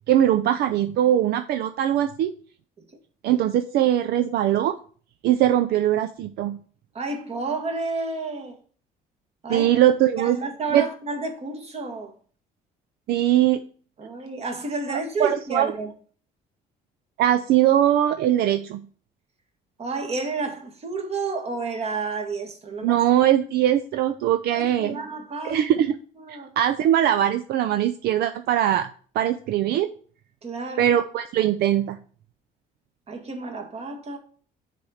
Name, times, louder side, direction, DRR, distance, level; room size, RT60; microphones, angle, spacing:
voice 1, 0.1-2.3 3.2-4.8 5.2-6.6 9.5-10.4 10.7-10.8 13.1-13.6 15.2-15.7 17.2-18.8 22.8-25.0 25.5-26.0 26.3-28.9 29.1-29.9 30.8-32.0, right 11 dB, 70° right, 0.5 m, -21 dB
voice 2, 6.9-8.6 9.4-9.7 10.2-12.1 14.0-15.9 19.8-23.0 24.5-25.6 26.2-26.5 30.4-31.0 33.1-34.2, right 3 dB, 40° right, 1.7 m, -30 dB
6.3 x 4.3 x 6.4 m
cardioid pair, 110°, 17 cm